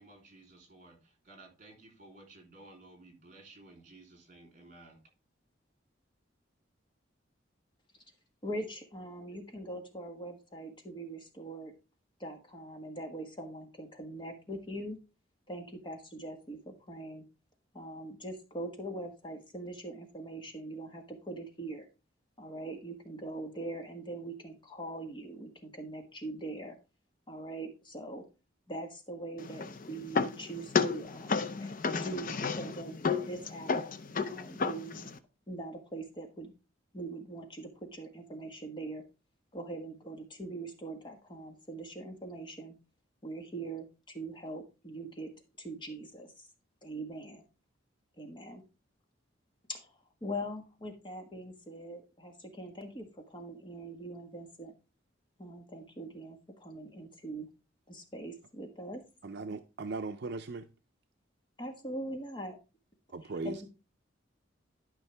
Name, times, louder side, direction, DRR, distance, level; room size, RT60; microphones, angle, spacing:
voice 1, 0.0-5.0, right 2 dB, 45° right, 3.3 m, -55 dB
voice 2, 8.4-11.7 12.2-15.0 15.5-17.2 17.7-21.8 22.4-26.7 27.3-28.2 28.7-32.9 33.3-33.7 34.2-35.1 35.5-36.5 36.9-39.0 39.5-42.7 43.2-45.3 45.6-46.5 46.8-47.4 48.2-48.6 49.7-49.9 50.2-54.7 55.4-57.5 57.9-59.0 61.6-62.6 63.2-63.7, right 1 dB, 25° left, 1.5 m, -42 dB
sound 1, 29.4-35.2, left 5 dB, 45° left, 0.6 m, -33 dB
voice 3, 59.2-60.7 63.1-63.7, right 3 dB, 60° right, 0.6 m, -38 dB
12.0 x 5.6 x 3.4 m
head